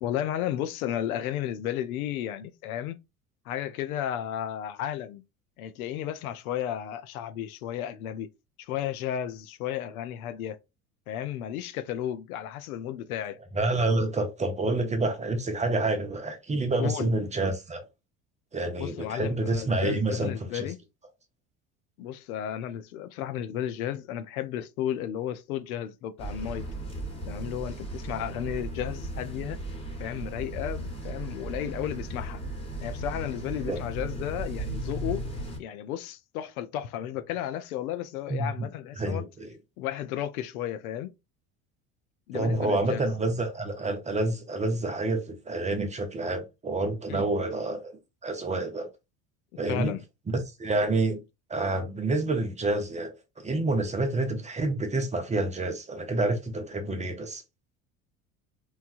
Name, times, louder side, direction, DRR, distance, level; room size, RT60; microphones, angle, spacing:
voice 1, 0.0-3.0 3.5-5.2 5.6-8.3 8.6-10.6 11.1-13.4 16.8-17.2 18.8-20.8 22.0-26.6 27.3-29.6 30.0-32.4 32.8-35.2 35.6-39.2 39.8-41.1 42.3-43.1 47.1-47.3 49.7-50.0, left 11 dB, 75° left, 0.5 m, -33 dB
voice 2, 13.5-17.9 18.5-20.7 33.7-33.8 38.3-38.7 39.0-39.5 42.3-48.9 49.6-49.9 50.3-51.2 51.5-53.1 53.4-57.4, right 2 dB, 15° right, 0.5 m, -28 dB
sound 1, 26.2-35.6, right 1 dB, 15° left, 1.2 m, -36 dB
3.1 x 2.1 x 2.4 m
hypercardioid pair, 70°, 43 cm